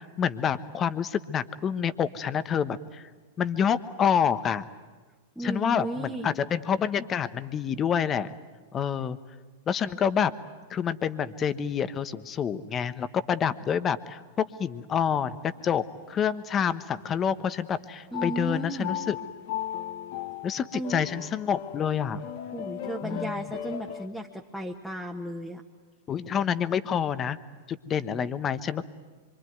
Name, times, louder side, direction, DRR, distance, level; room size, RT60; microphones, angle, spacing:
voice 1, 0.0-3.1 3.4-4.6 5.4-8.3 8.7-9.2 9.7-10.3 10.7-15.4 15.6-19.2 20.4-22.2 23.0-23.4 26.1-27.4 27.7-28.8, left 8 dB, 30° left, 13 dB, 1.1 m, -28 dB
voice 2, 5.3-6.3 18.1-18.9 20.7-21.1 22.5-25.6, right 1 dB, ahead, -2 dB, 1.7 m, -34 dB
sound 1, 15.1-15.8 16.5-17.1 18.1-24.1, left 10 dB, 55° left, 1.4 m, -37 dB
26.0 x 24.5 x 9.4 m, 1.4 s
hypercardioid pair, 100°, 0 cm